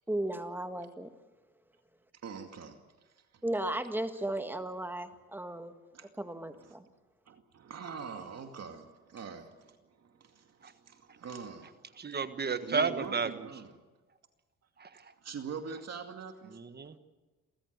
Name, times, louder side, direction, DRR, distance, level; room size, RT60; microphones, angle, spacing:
voice 1, 0.1-1.1 3.4-5.8 6.2-6.8, right 1 dB, 5° right, 8 dB, 1.8 m, -35 dB
voice 2, 2.2-2.8 5.9-6.1 6.6-6.7 7.3-11.9 12.6-13.7 15.2-16.6, right 6 dB, 55° right, 5 dB, 2.3 m, -43 dB
voice 3, 12.0-13.5 14.8-15.1 16.5-17.0, right 5 dB, 35° right, 10 dB, 1.5 m, -33 dB
28.5 x 14.5 x 8.2 m, 1.3 s
cardioid pair, 90°, 30 cm